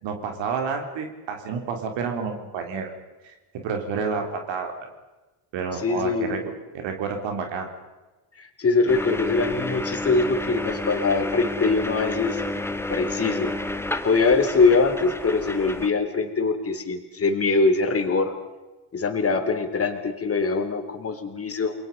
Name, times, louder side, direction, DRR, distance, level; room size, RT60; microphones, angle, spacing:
voice 1, 0.0-2.9 3.2-3.4 3.6-4.9 5.5-6.4 6.7-7.7, right 5 dB, 70° right, 4 dB, 3.6 m, -29 dB
voice 2, 5.8-6.4 8.4-12.4 12.9-13.5 14.0-18.3 18.9-21.7, left 4 dB, 30° left, 6 dB, 3.5 m, -23 dB
sound 1, 8.9-15.9, left 2 dB, 5° left, 1.6 m, -30 dB
29.0 x 22.0 x 5.4 m, 1.2 s
cardioid pair, 105°, 46 cm